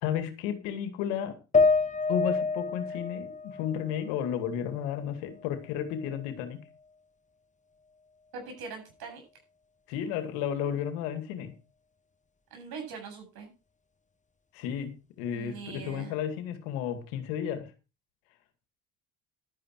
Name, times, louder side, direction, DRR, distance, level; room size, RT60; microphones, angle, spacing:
voice 1, 0.0-1.4 2.1-6.6 9.9-11.5 14.5-17.7, left 9 dB, 85° left, 9 dB, 2.2 m, -33 dB
sound 1, 1.5-5.0 5.3-6.4, left 4 dB, 20° left, 1.3 m, -29 dB
voice 2, 8.3-9.2 12.5-13.5 15.3-16.2, right 5 dB, 70° right, 3 dB, 7.9 m, -42 dB
12.0 x 10.5 x 4.6 m, 0.31 s
supercardioid pair, 70°, 39 cm